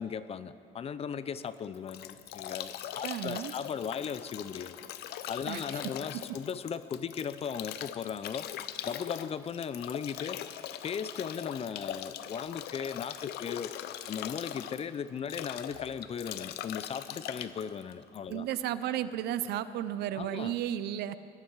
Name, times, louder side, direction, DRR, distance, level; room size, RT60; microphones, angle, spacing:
voice 1, 0.0-4.9 5.3-8.5 8.8-10.4 10.8-13.7 14.1-18.5 20.2-20.5, left 7 dB, 35° left, 14 dB, 0.5 m, -37 dB
Bathtub (filling or washing) / Drip / Trickle dribble, 1.5-18.7, left 11 dB, 75° left, 0.6 m, -41 dB
voice 2, 3.0-3.5 5.5-5.9 18.3-21.1, right 11 dB, 75° right, 14 dB, 0.6 m, -34 dB
18.5 x 12.5 x 4.7 m, 2.6 s
cardioid pair, 110°, 17 cm